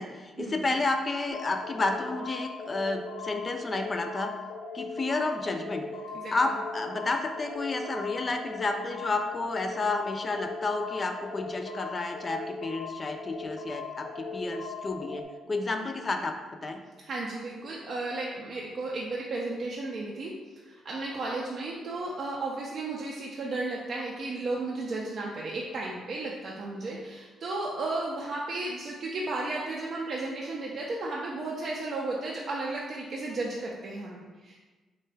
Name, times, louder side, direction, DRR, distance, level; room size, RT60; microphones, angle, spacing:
voice 1, 0.0-4.3 4.7-5.9 6.3-16.8, left 3 dB, 30° left, 5 dB, 0.3 m, -31 dB
sound 1, 1.3-15.2, left 3 dB, 70° left, 0.7 m, -39 dB
voice 2, 17.0-20.3 20.6-34.6, right 2 dB, 55° right, -3 dB, 0.4 m, -34 dB
3.8 x 2.2 x 3.2 m, 1.3 s
cardioid pair, 90°, 0 cm